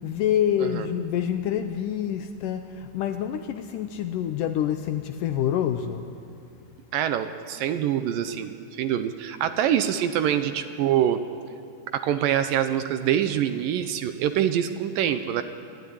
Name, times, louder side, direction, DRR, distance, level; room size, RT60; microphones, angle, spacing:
voice 1, 0.0-6.1, left 10 dB, 80° left, 8 dB, 2.0 m, -27 dB
voice 2, 6.9-11.2 11.9-15.4, right 10 dB, 80° right, 9 dB, 2.2 m, -25 dB
26.5 x 12.0 x 9.8 m, 2.5 s
omnidirectional pair, 4.4 m